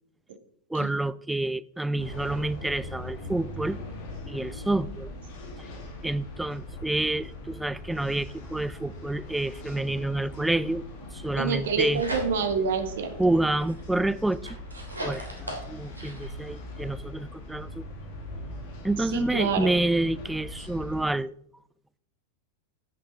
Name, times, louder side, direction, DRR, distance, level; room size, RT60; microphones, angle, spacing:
voice 1, 0.7-3.8 4.3-5.1 6.0-10.8 11.1-12.0 13.2-14.6 15.0-17.8 18.8-21.3, right 2 dB, 5° right, 0.4 m, -28 dB
sound 1, 2.0-21.0, left 1 dB, 50° left, 2.8 m, -41 dB
voice 2, 11.4-13.1 19.1-19.7, right 5 dB, 60° right, 1.4 m, -27 dB
sound 2, 11.6-12.7 13.1-16.4, right 1 dB, 80° right, 2.6 m, -39 dB
10.5 x 8.5 x 3.6 m
figure-of-eight pair, 90°, 0 cm